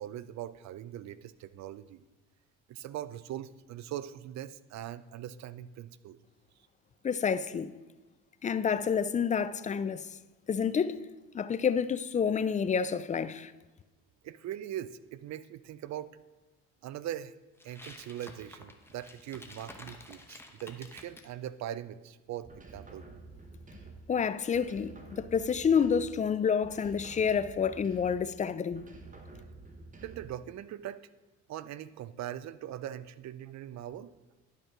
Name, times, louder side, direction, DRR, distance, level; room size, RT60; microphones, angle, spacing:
voice 1, 0.0-2.0 2.7-6.2 14.2-16.1 16.8-17.3 17.6-23.1 30.0-31.0 31.5-34.1, right 11 dB, 55° right, 0.5 m, -41 dB
voice 2, 7.0-7.7 8.4-10.1 10.5-11.0 11.3-13.5 24.1-28.8, left 6 dB, 25° left, 0.3 m, -29 dB
sound 1, 17.6-21.3, left 2 dB, 5° left, 0.9 m, -50 dB
sound 2, 22.4-24.2 24.5-26.3 26.6-28.3 28.7-30.4, right 3 dB, 25° right, 1.1 m, -50 dB
11.0 x 5.3 x 3.7 m
supercardioid pair, 80°, 34 cm